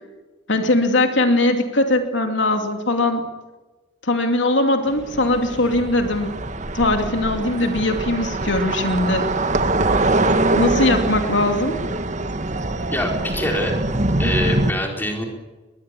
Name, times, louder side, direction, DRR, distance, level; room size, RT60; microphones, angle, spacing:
voice 1, 0.5-3.2 4.0-6.3 6.7-9.3 10.5-11.8, left 2 dB, 75° left, 5 dB, 2.7 m, -20 dB
sound 1, 4.9-14.7, right 2 dB, 40° right, 1.4 m, -23 dB
voice 2, 12.9-13.8 14.2-15.2, left 1 dB, 10° left, 1 dB, 4.4 m, -24 dB
22.0 x 21.0 x 8.4 m, 1.2 s
head